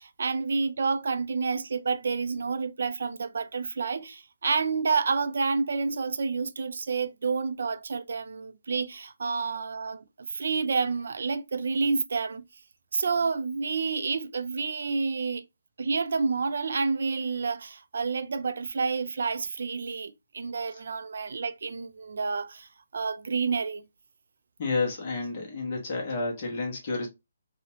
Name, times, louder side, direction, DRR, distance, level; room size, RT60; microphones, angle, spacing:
voice 1, 0.0-12.4 12.9-15.4 15.8-23.8, right 4 dB, 55° right, 0.3 m, -29 dB
voice 2, 24.6-27.1, left 3 dB, 30° left, 0.6 m, -30 dB
2.7 x 2.0 x 2.7 m
hypercardioid pair, 180°, 0 cm